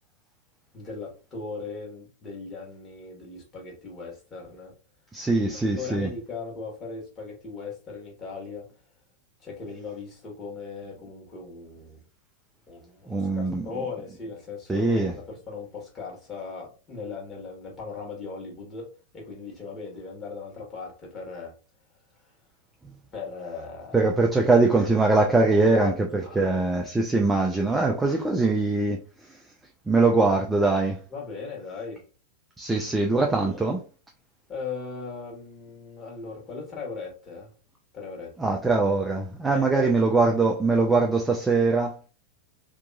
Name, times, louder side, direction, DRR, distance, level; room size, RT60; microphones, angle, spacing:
voice 1, 0.7-4.7 5.8-8.6 9.4-12.0 12.7-18.9 19.1-21.5 23.1-24.0 25.5-26.5 31.1-32.0 33.1-33.6 34.5-37.5 37.9-38.3 39.4-40.1, left 4 dB, 25° left, 1.6 m, -38 dB
voice 2, 5.1-6.1 13.1-13.7 14.7-15.1 23.9-29.0 29.9-31.0 32.6-33.8 38.4-41.9, right 3 dB, 10° right, 0.5 m, -22 dB
3.5 x 2.9 x 2.4 m
figure-of-eight pair, 90°, 0 cm